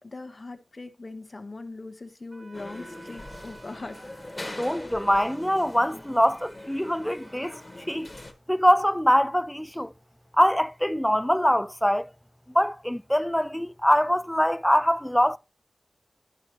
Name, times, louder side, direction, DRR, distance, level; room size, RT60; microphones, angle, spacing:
voice 1, 0.0-4.0 4.5-4.7, left 3 dB, 40° left, 1.0 m, -41 dB
Wind instrument woodwind instrument, 2.3-8.1, right 3 dB, 40° right, 1.2 m, -53 dB
sound 1, 2.5-8.3, left 1 dB, 20° left, 1.5 m, -42 dB
voice 2, 4.6-7.6 7.9-8.1 8.5-9.9 10.3-12.1 12.5-15.4, equal, 5° left, 0.4 m, -23 dB
12.0 x 6.2 x 3.1 m
wide cardioid pair, 70°, 0 cm